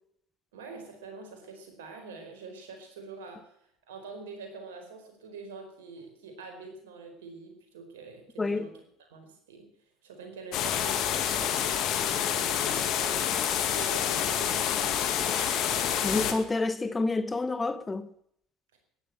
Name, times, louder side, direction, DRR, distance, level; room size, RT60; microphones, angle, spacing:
voice 1, 0.5-3.6 3.9-8.7 9.1-9.7 10.0-15.7, right 4 dB, 85° right, 4.5 m, -45 dB
voice 2, 8.4-8.7 16.0-18.1, left 3 dB, 20° left, 1.3 m, -28 dB
sound 1, 10.5-16.3, left 9 dB, 60° left, 2.1 m, -28 dB
14.0 x 11.0 x 7.8 m
hypercardioid pair, 75°, 0 cm